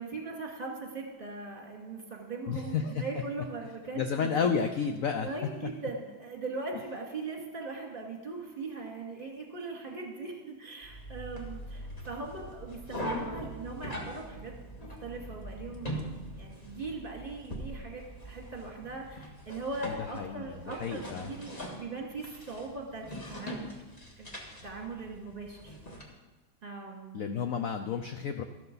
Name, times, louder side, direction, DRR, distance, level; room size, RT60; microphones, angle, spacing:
voice 1, 0.0-4.5 5.2-14.5 15.0-16.0 16.3-23.8 24.2-24.3 24.6-25.7 26.6-27.4, right 3 dB, 25° right, -1 dB, 2.3 m, -40 dB
voice 2, 2.5-3.0 3.9-5.3 19.9-21.3 27.1-28.4, left 6 dB, 70° left, 6 dB, 0.8 m, -31 dB
sound 1, 10.8-26.0, equal, 20° left, 1.5 m, -42 dB
13.5 x 12.5 x 4.0 m, 1.3 s
omnidirectional pair, 2.2 m